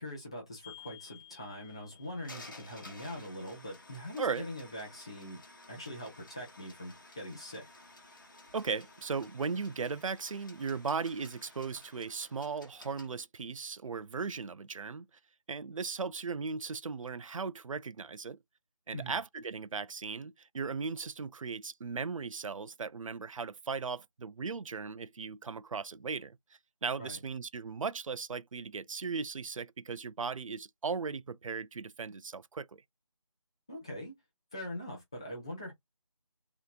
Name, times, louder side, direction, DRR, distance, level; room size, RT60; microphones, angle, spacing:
voice 1, 0.0-5.4 5.7-7.7 18.9-19.2 27.0-27.2 33.7-34.1 34.5-35.7, left 1 dB, 10° left, 0.6 m, -42 dB
sound 1, 0.6-13.1, left 3 dB, 35° left, 1.0 m, -54 dB
voice 2, 8.5-15.1 15.5-18.4 18.9-26.4 26.8-32.8, right 5 dB, 70° right, 0.4 m, -37 dB
3.5 x 2.8 x 2.5 m
figure-of-eight pair, 165°, 18 cm